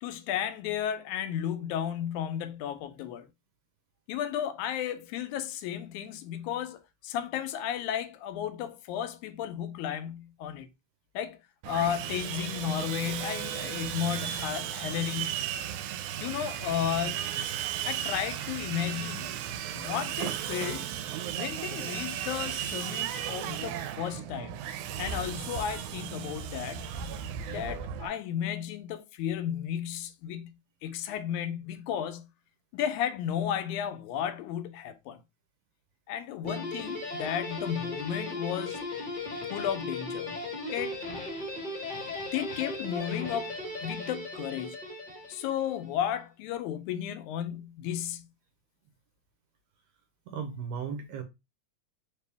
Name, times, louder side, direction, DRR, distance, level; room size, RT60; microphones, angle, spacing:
voice 1, 0.0-3.3 4.1-10.7 11.1-11.4 11.7-15.4 16.2-17.2 17.8-19.4 19.7-20.9 21.4-24.6 25.0-26.9 27.5-30.5 30.8-32.3 32.7-35.2 36.1-38.9 39.5-40.3 40.7-41.0 42.3-44.8 45.3-48.3, left 9 dB, 85° left, 2.0 m, -33 dB
Sawing, 11.6-28.1, right 10 dB, 90° right, 2.0 m, -35 dB
Guitar, 36.4-45.8, left 2 dB, 35° left, 0.7 m, -37 dB
voice 2, 50.3-51.2, right 6 dB, 70° right, 1.7 m, -36 dB
4.5 x 2.9 x 3.4 m
omnidirectional pair, 3.4 m